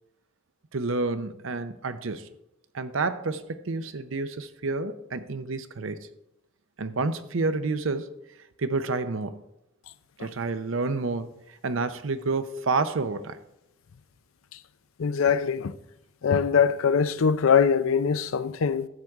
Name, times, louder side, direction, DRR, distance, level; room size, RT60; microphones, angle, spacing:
voice 1, 0.7-2.3 2.7-6.1 6.8-8.1 8.6-9.4 10.2-11.3 11.6-13.4, right 3 dB, 70° right, 0.7 m, -29 dB
voice 2, 15.0-15.7 16.2-18.9, left 6 dB, 85° left, 0.5 m, -22 dB
12.5 x 7.9 x 3.6 m
head